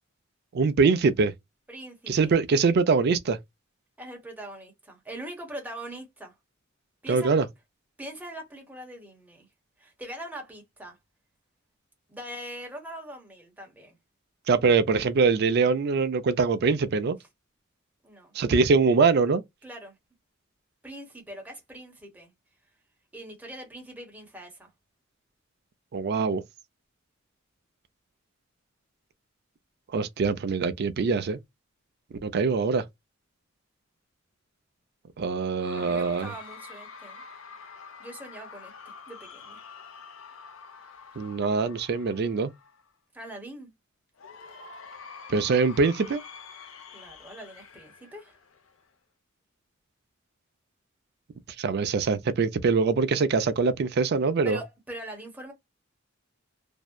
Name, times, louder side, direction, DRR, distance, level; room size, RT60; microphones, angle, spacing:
voice 1, 0.5-1.3 2.1-3.4 7.1-7.5 14.5-17.2 18.3-19.4 25.9-26.4 29.9-31.4 32.2-32.8 35.2-36.3 41.2-42.5 45.3-46.2 51.6-54.6, right 4 dB, 55° right, 0.4 m, -23 dB
voice 2, 1.7-2.4 4.0-6.3 7.0-7.4 8.0-9.5 9.8-11.0 12.1-14.0 18.0-18.3 19.6-20.0 20.8-22.3 23.1-24.7 35.8-37.2 38.0-39.6 43.1-43.7 46.9-48.3 54.4-55.5, right 1 dB, 10° right, 0.9 m, -42 dB
Cheering / Crowd, 35.6-42.9 44.2-48.9, left 5 dB, 85° left, 0.6 m, -47 dB
2.6 x 2.1 x 2.2 m
head